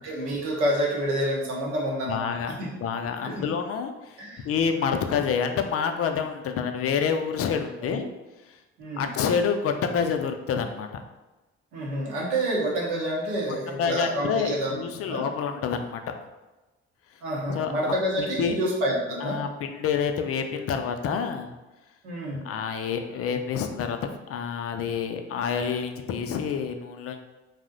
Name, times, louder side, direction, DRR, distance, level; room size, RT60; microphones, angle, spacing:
voice 1, 0.0-2.7 3.2-3.4 4.2-4.5 7.9-8.0 8.8-9.1 11.7-14.7 15.1-15.2 17.2-19.4 22.0-22.5, right 1 dB, 80° right, -3 dB, 0.8 m, -28 dB
voice 2, 2.1-8.1 8.5-8.6 9.0-11.0 13.5-16.1 17.5-17.7 18.2-18.6 19.2-21.5 22.4-27.2, left 6 dB, 45° left, 6 dB, 0.4 m, -28 dB
2.7 x 2.0 x 3.7 m, 1.1 s
hypercardioid pair, 45°, 34 cm